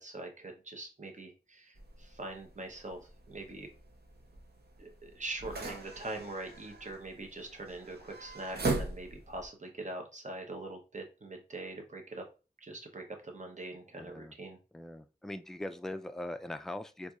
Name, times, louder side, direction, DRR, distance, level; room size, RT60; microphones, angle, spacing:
voice 1, 0.0-3.7 4.8-12.2 12.6-14.6, right 2 dB, 45° right, 4 dB, 0.9 m, -43 dB
sound 1, 1.8-9.5, right 3 dB, 75° right, 0.9 m, -40 dB
voice 2, 14.0-14.3 14.7-17.2, left 1 dB, 5° left, 9 dB, 0.3 m, -41 dB
4.2 x 2.6 x 2.3 m, 0.32 s
wide cardioid pair, 55°, 17 cm